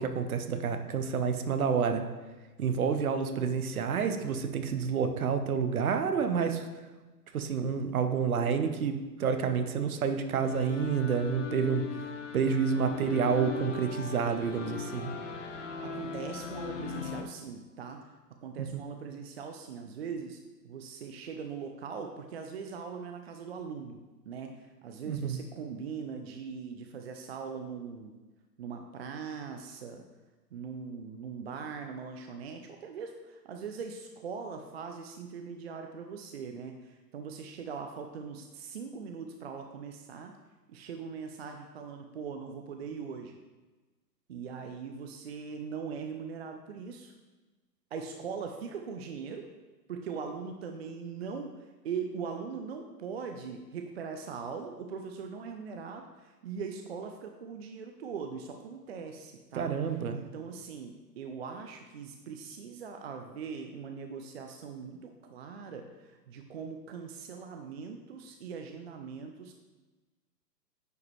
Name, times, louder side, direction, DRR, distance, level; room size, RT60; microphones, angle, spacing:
voice 1, 0.0-2.0 2.6-6.7 7.3-11.8 12.3-15.1 18.6-18.8 25.1-25.4 59.5-60.2, right 6 dB, 60° right, 7 dB, 0.9 m, -29 dB
sound 1, 10.4-17.2, left 6 dB, 50° left, 0.7 m, -39 dB
voice 2, 15.8-18.0 18.4-20.4 20.6-24.0 24.3-28.2 28.6-30.0 30.5-40.3 40.7-43.4 44.3-47.1 47.9-49.5 49.9-69.5, right 6 dB, 40° right, 4 dB, 0.5 m, -41 dB
9.7 x 4.7 x 3.2 m, 1.2 s
figure-of-eight pair, 110°, 50 cm